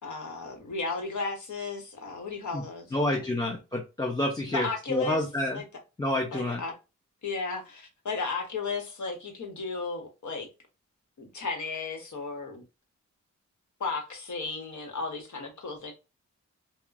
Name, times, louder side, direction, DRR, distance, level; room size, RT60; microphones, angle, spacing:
voice 1, 0.0-3.4 4.5-5.2 5.5-5.6 6.3-6.7 7.2-10.5 11.2-12.6 13.8-15.9, left 4 dB, 70° left, 1.1 m, -34 dB
voice 2, 2.9-5.6 6.0-6.6, left 1 dB, 15° left, 0.6 m, -29 dB
2.9 x 2.1 x 2.4 m
cardioid pair, 75°, 30 cm